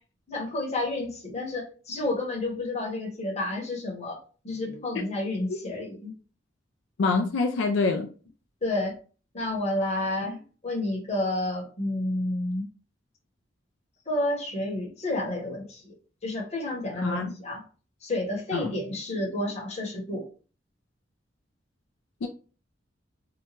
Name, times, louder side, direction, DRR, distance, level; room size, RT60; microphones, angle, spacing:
voice 1, 0.3-4.2 4.4-6.1 8.6-9.0 9.3-12.6 14.1-15.9 16.2-17.6 18.0-20.3, left 1 dB, 35° left, 0.9 m, -30 dB
voice 2, 7.0-8.1 17.0-17.3 18.5-18.7 22.2-22.3, left 3 dB, 75° left, 0.4 m, -25 dB
2.9 x 2.2 x 2.8 m
head